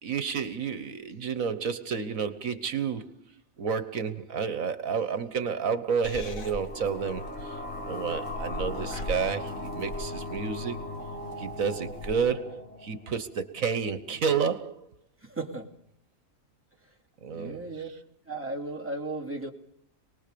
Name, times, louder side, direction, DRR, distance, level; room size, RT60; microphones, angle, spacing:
voice 1, 0.0-3.1 3.6-10.8 11.4-14.9 17.2-17.6, right 6 dB, 75° right, 1.6 m, -30 dB
Purr / Meow, 6.0-12.1, left 1 dB, 75° left, 2.0 m, -41 dB
sound 1, 6.1-13.5, left 2 dB, 5° left, 4.6 m, -38 dB
voice 2, 15.2-15.7 17.3-17.9 18.3-19.5, right 2 dB, 10° right, 2.9 m, -35 dB
27.5 x 20.0 x 6.9 m
omnidirectional pair, 1.4 m